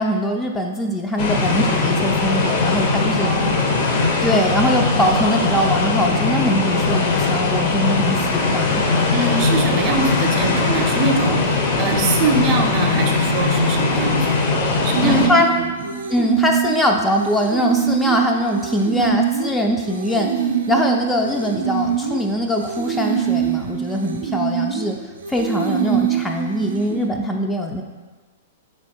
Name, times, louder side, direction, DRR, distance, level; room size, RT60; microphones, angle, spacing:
voice 1, 0.0-3.3 4.2-8.8 15.0-15.5 16.1-25.0 25.3-27.8, left 1 dB, 10° left, 2 dB, 0.3 m, -22 dB
sound 1, 1.2-15.3, left 3 dB, 50° left, 0.7 m, -20 dB
voice 2, 3.2-3.8 9.1-14.5 14.8-15.9 19.0-19.2 25.9-26.0, right 3 dB, 40° right, 4 dB, 0.5 m, -23 dB
sound 2, 14.9-27.1, right 9 dB, 85° right, 0.4 m, -24 dB
3.5 x 2.8 x 4.2 m, 1.3 s
hypercardioid pair, 125°, 0 cm